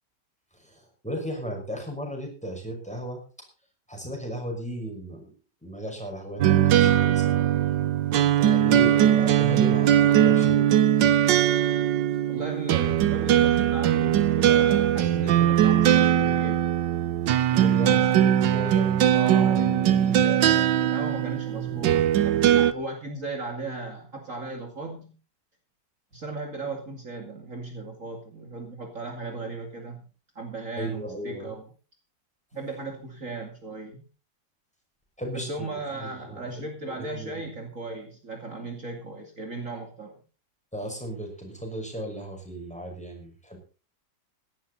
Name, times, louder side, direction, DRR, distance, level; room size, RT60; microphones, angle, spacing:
voice 1, 0.5-3.2 3.9-5.3 5.6-7.5 8.2-10.7 17.5-19.0 21.6-22.0 30.8-31.5 35.2-37.5 40.7-43.6, right 1 dB, 5° left, 2 dB, 5.7 m, -36 dB
sound 1, 6.4-22.7, right 10 dB, 80° right, 1.5 m, -20 dB
voice 2, 12.3-16.6 17.5-18.3 19.1-25.1 26.1-30.0 30.3-31.6 32.5-34.1 35.3-40.2, right 3 dB, 45° right, 3 dB, 2.9 m, -36 dB
17.0 x 12.5 x 4.1 m, 0.35 s
omnidirectional pair, 1.9 m